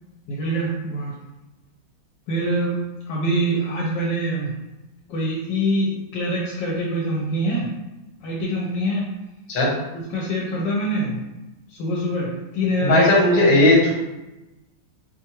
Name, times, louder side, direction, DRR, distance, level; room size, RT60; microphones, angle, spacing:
voice 1, 0.3-1.1 2.3-4.5 5.1-7.7 8.2-9.1 10.1-11.2 11.7-13.3, equal, 80° left, -4 dB, 1.3 m, -25 dB
voice 2, 12.8-13.9, left 1 dB, 60° left, -3 dB, 1.5 m, -16 dB
4.5 x 2.4 x 2.9 m, 1.0 s
omnidirectional pair, 2.0 m